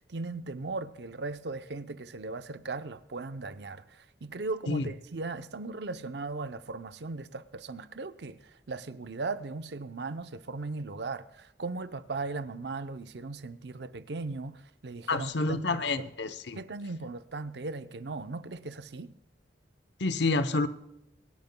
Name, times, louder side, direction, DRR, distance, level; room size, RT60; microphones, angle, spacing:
voice 1, 0.0-16.1 16.6-19.1, right 3 dB, 70° right, 0.6 m, -38 dB
voice 2, 15.1-16.6 20.0-20.7, left 3 dB, 75° left, 0.8 m, -28 dB
25.0 x 10.5 x 2.2 m
head